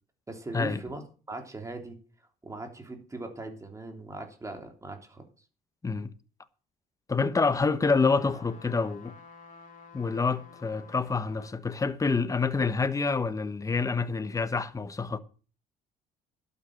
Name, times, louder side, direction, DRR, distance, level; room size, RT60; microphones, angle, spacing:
voice 1, 0.3-1.0 1.3-2.0 2.4-5.3 7.5-7.6, right 2 dB, 20° right, 3.3 m, -39 dB
voice 2, 7.1-9.2 9.9-15.2, left 4 dB, 20° left, 1.1 m, -27 dB
sound 1, 7.9-11.6 12.1-12.2, left 4 dB, 50° left, 2.8 m, -51 dB
12.0 x 8.4 x 7.2 m
cardioid pair, 110°, 17 cm